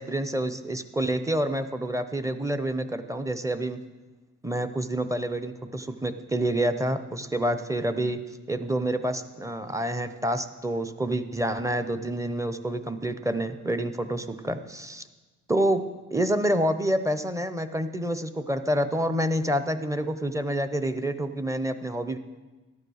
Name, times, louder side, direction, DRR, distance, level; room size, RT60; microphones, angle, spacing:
voice 1, 0.0-3.8 4.4-8.2 8.5-15.0 15.5-15.8 16.1-22.2, right 1 dB, 10° right, 10 dB, 0.7 m, -28 dB
13.0 x 9.6 x 6.4 m, 1.2 s
wide cardioid pair, 105°, 32 cm